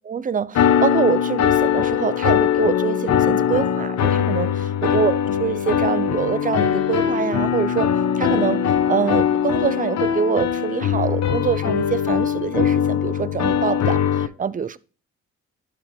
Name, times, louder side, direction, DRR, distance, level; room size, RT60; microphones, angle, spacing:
voice 1, 0.0-7.9 8.2-14.8, right 6 dB, 25° right, 0.5 m, -25 dB
sound 1, 0.5-14.3, left 8 dB, 60° left, 1.0 m, -21 dB
11.5 x 4.8 x 3.5 m
cardioid pair, 90°, 30 cm